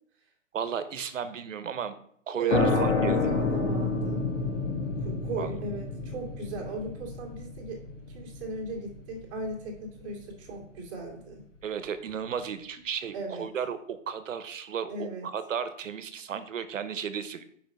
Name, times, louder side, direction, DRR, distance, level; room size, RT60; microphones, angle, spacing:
voice 1, 0.5-1.9 2.3-3.2 5.4-5.5 11.6-17.4, right 7 dB, 80° right, 12 dB, 1.0 m, -34 dB
voice 2, 2.4-4.3 5.0-7.8 8.1-11.4 13.1-13.5 14.9-15.3, right 3 dB, 20° right, -2 dB, 2.2 m, -36 dB
sound 1, 2.5-9.9, left 3 dB, 70° left, 2.5 m, -29 dB
6.0 x 4.9 x 5.3 m, 0.66 s
hypercardioid pair, 165°, 38 cm